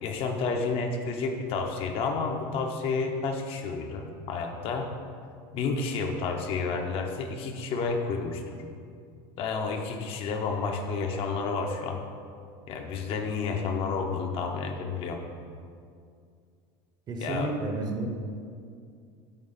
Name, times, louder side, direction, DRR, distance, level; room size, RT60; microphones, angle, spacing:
voice 1, 0.0-4.9 5.5-8.6 9.4-12.0 12.7-15.2 17.2-17.5, left 4 dB, 50° left, 3 dB, 0.8 m, -30 dB
voice 2, 17.1-18.1, right 2 dB, 35° right, 3 dB, 0.8 m, -31 dB
9.0 x 3.4 x 4.1 m, 2.3 s
supercardioid pair, 115°, 12 cm